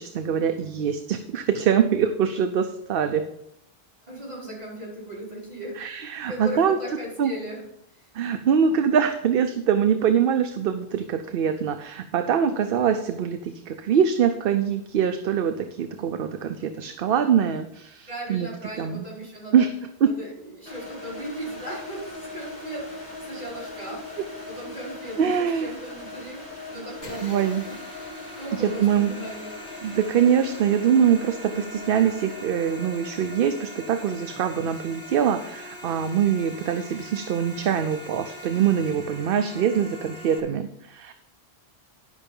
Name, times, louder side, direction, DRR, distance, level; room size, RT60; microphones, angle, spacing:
voice 1, 0.0-3.2 5.8-6.8 7.2-7.3 8.1-18.5 18.8-19.1 19.5-19.7 20.0-20.1 25.2-25.7 27.2-27.6 28.5-29.1 29.8-41.1, right 8 dB, 65° right, 8 dB, 0.8 m, -23 dB
voice 2, 4.1-6.0 6.3-7.7 7.9-8.1 16.6-16.7 18.1-19.7 20.0-26.4 26.7-28.1 28.4-29.5, right 1 dB, 40° right, -7 dB, 4.4 m, -37 dB
sound 1, 20.7-37.5, left 2 dB, 40° left, 2.0 m, -41 dB
sound 2, 27.0-40.4, left 1 dB, 80° left, 2.0 m, -43 dB
11.0 x 5.6 x 5.3 m, 0.81 s
omnidirectional pair, 1.0 m